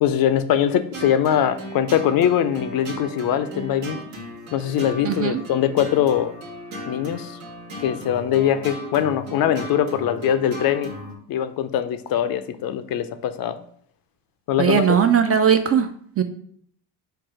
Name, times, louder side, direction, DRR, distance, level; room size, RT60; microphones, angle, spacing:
voice 1, 0.0-4.0 4.5-6.3 6.9-7.4 7.8-10.9 11.3-13.6 14.5-14.8, left 10 dB, 55° left, 10 dB, 0.5 m, -22 dB
sound 1, 0.9-11.2, right 1 dB, 75° right, 1.3 m, -36 dB
voice 2, 5.1-5.4 14.6-15.9 16.2-16.3, right 8 dB, 35° right, 8 dB, 0.4 m, -18 dB
4.5 x 2.3 x 4.8 m, 0.63 s
supercardioid pair, 80°, 45 cm